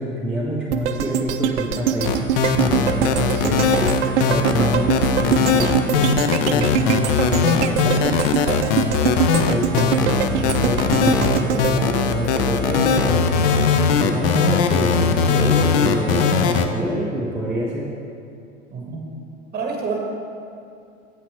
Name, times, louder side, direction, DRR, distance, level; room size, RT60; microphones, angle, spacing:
voice 1, 0.0-2.2 2.5-3.9 4.3-8.0 9.5-13.6 14.0-17.9, equal, 5° right, -6 dB, 0.3 m, -26 dB
sound 1, 0.7-12.9 13.3-13.4, right 9 dB, 60° right, 0.5 m, -24 dB
sound 2, 2.0-16.7, left 6 dB, 45° left, 0.6 m, -19 dB
voice 2, 8.4-8.8 18.7-19.1 19.5-20.0, right 4 dB, 25° right, 1 dB, 1.2 m, -29 dB
8.3 x 8.0 x 3.0 m, 2.5 s
figure-of-eight pair, 90°, 40 cm